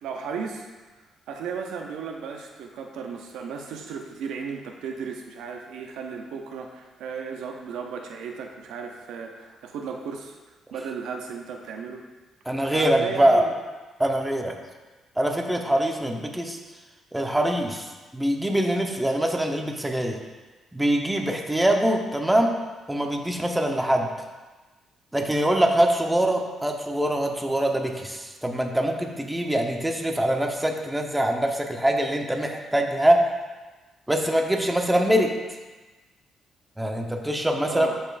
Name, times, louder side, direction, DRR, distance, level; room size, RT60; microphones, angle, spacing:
voice 1, 0.0-0.7 1.3-10.4 10.7-12.1 12.7-13.5 37.7-38.0, right 6 dB, 85° right, 3 dB, 0.6 m, -35 dB
voice 2, 12.5-13.4 14.0-14.5 15.2-16.6 17.1-20.2 20.7-22.5 22.9-24.1 25.1-33.3 34.1-35.3 36.8-37.9, right 1 dB, 10° right, 2 dB, 0.9 m, -23 dB
12.0 x 4.3 x 2.5 m, 1.2 s
cardioid pair, 90°, 0 cm